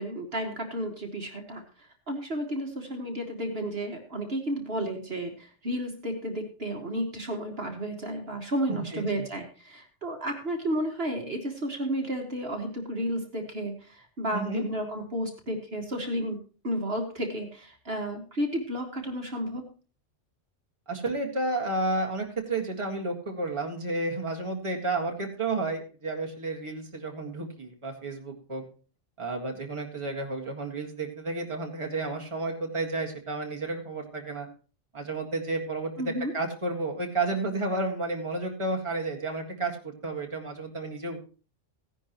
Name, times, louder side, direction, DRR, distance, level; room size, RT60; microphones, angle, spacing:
voice 1, 0.0-16.4 16.6-19.7 36.0-36.3, equal, 55° right, 2 dB, 2.0 m, -32 dB
voice 2, 8.9-9.2 14.3-14.6 20.9-28.6 29.2-34.5 34.9-41.2, right 2 dB, 25° right, 1 dB, 1.9 m, -31 dB
16.0 x 10.5 x 3.0 m, 0.36 s
omnidirectional pair, 1.3 m